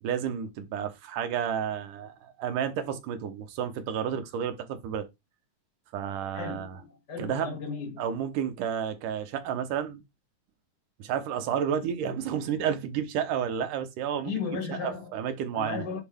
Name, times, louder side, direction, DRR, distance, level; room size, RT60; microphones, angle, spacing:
voice 1, 0.0-5.1 5.9-6.8 7.2-7.6 8.0-10.0 11.0-14.3 14.7-15.9, right 8 dB, 80° right, 2.8 m, -31 dB
voice 2, 6.3-8.0 14.1-15.1 15.5-16.0, left 5 dB, 35° left, 2.9 m, -35 dB
9.6 x 4.7 x 3.6 m
omnidirectional pair, 3.7 m